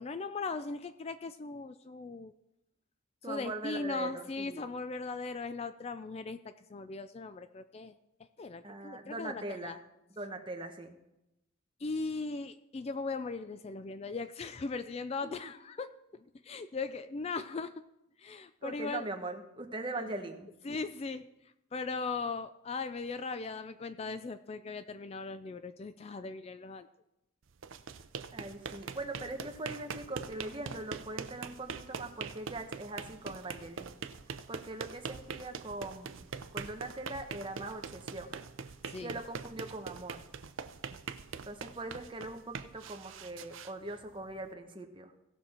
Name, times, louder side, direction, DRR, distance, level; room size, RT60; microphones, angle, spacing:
voice 1, 0.0-2.3 3.3-7.9 8.4-9.8 11.8-17.7 18.2-19.0 20.0-20.1 20.7-21.3 21.7-26.9 38.9-39.1, left 4 dB, 30° left, 12 dB, 0.3 m, -38 dB
voice 2, 3.2-4.7 8.6-9.8 10.1-11.0 15.2-15.5 18.6-20.5 28.3-34.0 34.5-38.3 39.0-40.2 41.4-45.1, right 2 dB, 25° right, 4 dB, 1.0 m, -41 dB
sound 1, 27.5-44.5, right 5 dB, 75° right, 0.6 m, -43 dB
17.0 x 6.3 x 4.3 m, 0.89 s
head